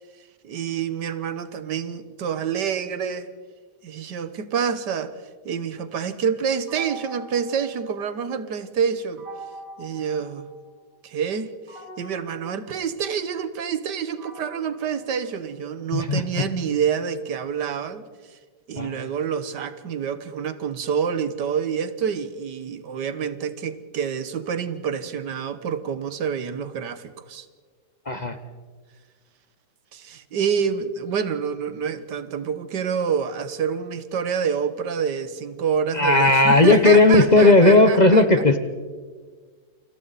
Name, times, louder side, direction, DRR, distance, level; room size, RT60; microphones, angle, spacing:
voice 1, 0.4-3.3 3.8-5.1 5.5-9.3 9.8-10.5 11.0-18.4 18.7-27.5 29.9-38.2, right 7 dB, 90° right, 12 dB, 1.8 m, -27 dB
sound 1, 6.7-8.5 9.2-11.0 11.7-15.9, right 2 dB, 55° right, 6.4 m, -44 dB
voice 2, 15.9-16.2 18.8-18.9 28.1-28.4 35.9-38.6, left 2 dB, 30° left, 8 dB, 1.0 m, -15 dB
29.0 x 26.0 x 4.1 m, 1.5 s
omnidirectional pair, 1.8 m